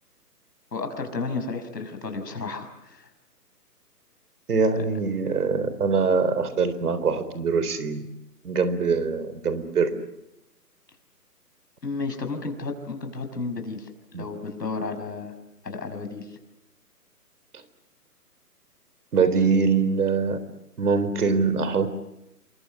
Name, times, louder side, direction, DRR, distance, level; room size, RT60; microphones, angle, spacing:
voice 1, 0.7-3.1 4.8-4.9 11.8-13.9 14.1-15.3 15.6-16.4, left 4 dB, 85° left, 7 dB, 6.2 m, -32 dB
voice 2, 4.5-8.0 8.4-10.0 14.1-14.2 19.1-20.4 20.8-21.9, right 5 dB, 65° right, 13 dB, 3.9 m, -23 dB
28.5 x 23.0 x 7.9 m, 0.89 s
hypercardioid pair, 155°, 48 cm